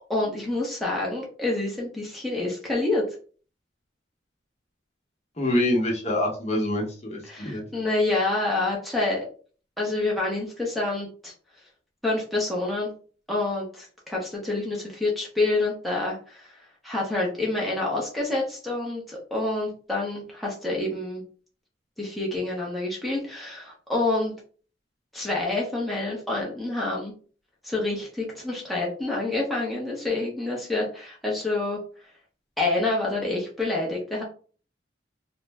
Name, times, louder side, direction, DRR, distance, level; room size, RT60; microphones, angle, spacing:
voice 1, 0.1-3.0 7.3-9.3 9.8-11.3 12.0-12.9 13.3-21.2 22.0-24.3 25.1-27.1 27.6-31.8 32.6-34.2, left 2 dB, ahead, -4 dB, 0.6 m, -27 dB
voice 2, 5.4-7.6, left 1 dB, 35° left, -1 dB, 0.7 m, -25 dB
2.5 x 2.0 x 3.2 m, 0.40 s
head